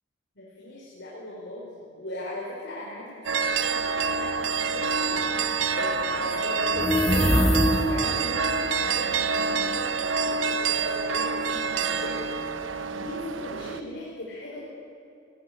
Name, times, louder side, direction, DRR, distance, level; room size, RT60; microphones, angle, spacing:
voice 1, 0.4-5.2 5.8-7.6 7.9-12.3 12.9-14.7, left 1 dB, 65° left, -6 dB, 5.1 m, -38 dB
sound 1, 3.2-13.8, right 5 dB, 80° right, 1.1 m, -27 dB
sound 2, 6.7-8.2, equal, 15° left, 1.8 m, -22 dB
19.5 x 18.5 x 10.0 m, 2.6 s
head